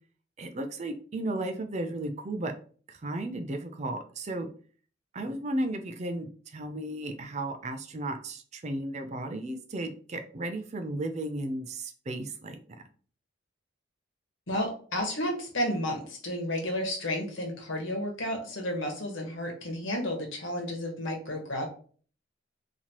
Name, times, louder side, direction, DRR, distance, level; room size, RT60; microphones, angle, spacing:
voice 1, 0.4-2.5 2.9-4.5 5.1-12.6, right 1 dB, 35° right, 7 dB, 0.4 m, -34 dB
voice 2, 14.5-21.7, left 1 dB, 70° left, 1 dB, 1.3 m, -32 dB
4.1 x 2.9 x 2.9 m, 0.43 s
head